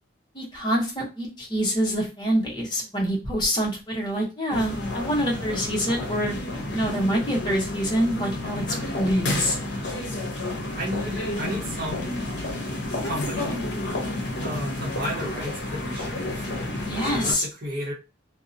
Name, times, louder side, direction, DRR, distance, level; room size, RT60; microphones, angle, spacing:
voice 1, 0.3-6.4 6.7-9.6 16.8-17.4, equal, 25° left, -2 dB, 0.6 m, -26 dB
sound 1, 4.5-17.3, left 1 dB, 70° left, 0.6 m, -30 dB
voice 2, 10.8-12.1 13.0-13.6 14.3-16.5 16.8-17.9, equal, 50° right, -4 dB, 0.8 m, -33 dB
2.6 x 2.0 x 2.5 m, 0.30 s
head